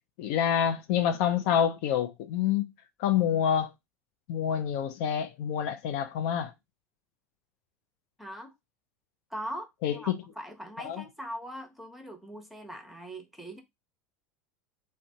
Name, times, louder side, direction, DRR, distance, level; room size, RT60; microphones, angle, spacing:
voice 1, 0.2-2.6 3.0-3.7 4.3-6.5 9.8-10.2 10.8-11.0, left 9 dB, 60° left, 0.4 m, -27 dB
voice 2, 8.2-8.5 9.3-13.6, equal, ahead, 0.9 m, -41 dB
2.5 x 2.2 x 3.5 m
hypercardioid pair, 80°, 8 cm